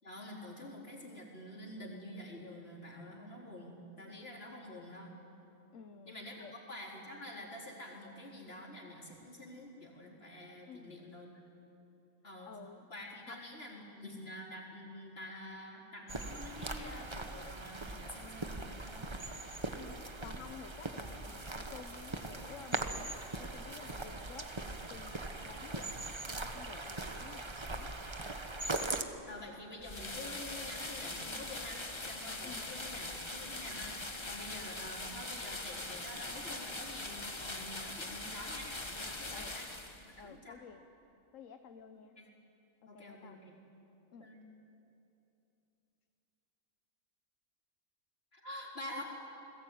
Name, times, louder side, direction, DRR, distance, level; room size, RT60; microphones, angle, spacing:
voice 1, 0.0-5.1 6.0-11.3 12.2-12.5 12.9-19.2 29.2-34.0 34.3-39.6 40.0-40.6 42.1-42.3 42.9-43.6 44.1-44.4 48.3-49.0, left 1 dB, 50° left, -1 dB, 4.4 m, -48 dB
voice 2, 5.7-6.5 10.7-11.1 12.5-12.9 13.3-13.4 19.8-23.1 23.4-27.9 32.4-32.8 39.3-39.6 40.2-40.9 41.3-42.2 42.8-43.4 44.1-44.3, left 7 dB, 75° left, 8 dB, 1.3 m, -52 dB
sound 1, 16.1-29.0, right 2 dB, 20° right, 1.2 m, -40 dB
sound 2, 29.8-40.2, left 2 dB, 20° left, 1.5 m, -42 dB
29.0 x 20.5 x 9.3 m, 2.9 s
omnidirectional pair, 1.4 m